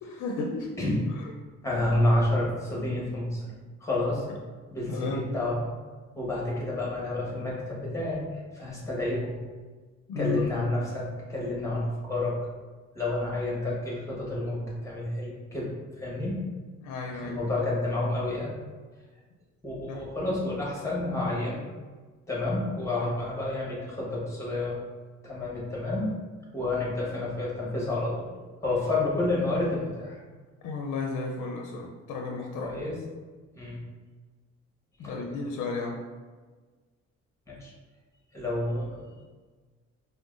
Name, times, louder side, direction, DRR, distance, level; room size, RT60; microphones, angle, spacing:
voice 1, 0.0-0.7 1.1-1.2 4.9-5.3 10.1-10.5 16.8-17.4 19.9-20.0 23.0-23.1 30.6-32.7 35.0-36.0, left 4 dB, 80° left, 1 dB, 0.5 m, -33 dB
voice 2, 1.6-3.5 3.8-4.2 4.7-5.7 6.1-8.3 8.5-9.3 10.2-12.4 12.9-15.7 16.0-16.4 17.1-18.5 19.6-21.6 22.3-24.8 25.2-26.1 26.5-28.3 28.6-30.2 32.6-32.9 33.6-33.8 35.0-35.4 37.5-37.7 38.3-39.0, left 2 dB, 10° left, -4 dB, 1.2 m, -29 dB
4.6 x 2.2 x 2.4 m, 1.4 s
cardioid pair, 90°, 30 cm